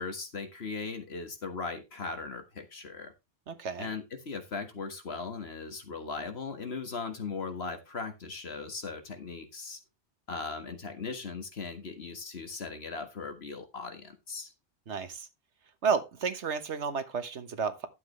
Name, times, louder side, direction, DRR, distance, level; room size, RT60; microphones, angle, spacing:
voice 1, 0.0-3.1 3.8-9.8 10.3-14.5, left 4 dB, 60° left, 1.8 m, -38 dB
voice 2, 3.5-3.9 14.9-15.3 15.8-17.9, right 5 dB, 75° right, 1.5 m, -31 dB
11.5 x 7.5 x 3.2 m
omnidirectional pair, 1.2 m